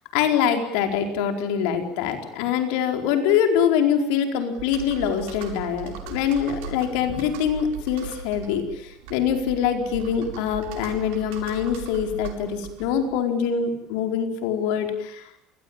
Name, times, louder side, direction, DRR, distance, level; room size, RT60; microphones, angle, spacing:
voice 1, 0.1-15.3, left 8 dB, 70° left, 6 dB, 4.7 m, -24 dB
Computer keyboard, 4.5-13.2, right 6 dB, 75° right, 7.6 m, -38 dB
28.5 x 20.5 x 9.1 m, 0.79 s
cardioid pair, 175°, 0 cm